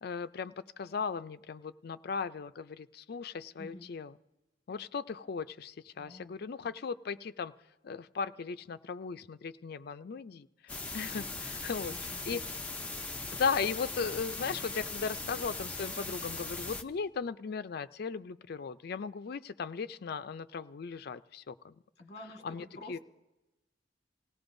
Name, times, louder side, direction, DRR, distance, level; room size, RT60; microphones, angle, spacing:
voice 1, 0.0-4.1 4.7-7.5 7.8-10.5 10.9-12.0 12.2-12.4 13.3-21.8 22.4-23.0, left 5 dB, 55° left, 12 dB, 0.4 m, -37 dB
voice 2, 3.6-3.9 6.0-6.4 11.9-12.5 12.9-13.0 22.0-23.0, left 2 dB, 35° left, 3 dB, 1.5 m, -49 dB
sound 1, 10.7-16.8, left 3 dB, 5° left, 0.6 m, -39 dB
28.0 x 17.5 x 2.6 m, 1.0 s
head